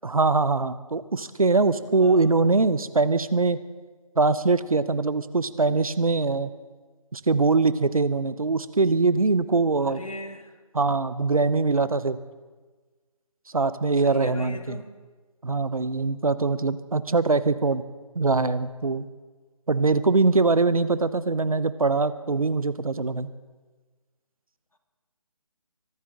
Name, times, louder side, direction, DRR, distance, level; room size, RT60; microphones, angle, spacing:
voice 1, 0.0-3.6 4.2-6.5 7.1-10.0 10.7-12.2 13.5-14.8 15.4-17.8 18.1-19.1 19.7-23.3, right 3 dB, 75° right, 14 dB, 0.9 m, -22 dB
voice 2, 2.0-2.4 9.8-10.5 14.0-14.9, left 1 dB, 70° left, 6 dB, 2.0 m, -39 dB
24.0 x 12.0 x 3.8 m, 1.3 s
figure-of-eight pair, 150°, 19 cm